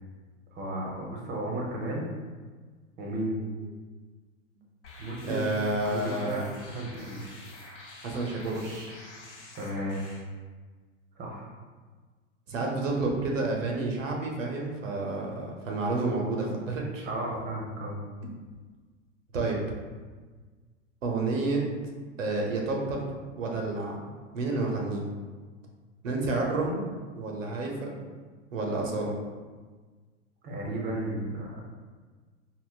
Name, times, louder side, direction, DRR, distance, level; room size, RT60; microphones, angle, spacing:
voice 1, 0.5-2.1 3.0-3.4 5.0-5.5 5.8-7.4 9.6-10.0 11.2-11.5 17.0-18.0 30.4-31.7, right 1 dB, 25° right, -1 dB, 0.7 m, -34 dB
sound 1, 4.8-10.2, left 2 dB, 65° left, 0.7 m, -48 dB
voice 2, 5.2-6.5 8.0-9.0 12.5-17.1 19.3-19.6 21.0-21.6 22.2-23.1 23.4-24.0 24.3-25.1 26.0-26.8 27.1-28.0 28.5-29.1, right 2 dB, 85° right, 0 dB, 0.7 m, -30 dB
3.7 x 2.0 x 2.3 m, 1.4 s
hypercardioid pair, 95°, 37 cm